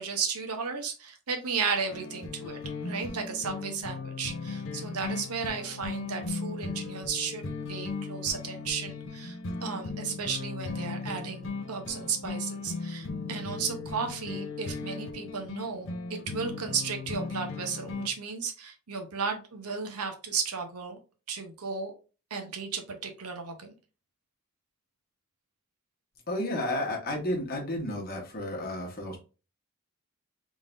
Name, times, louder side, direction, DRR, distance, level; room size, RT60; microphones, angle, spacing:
voice 1, 0.0-21.0 21.3-21.9 22.3-23.7, right 5 dB, 85° right, 4 dB, 0.9 m, -34 dB
sound 1, 1.9-18.1, left 4 dB, 60° left, 0.7 m, -37 dB
voice 2, 26.3-29.2, left 1 dB, 40° left, 0 dB, 1.2 m, -32 dB
3.6 x 3.6 x 2.6 m, 0.34 s
head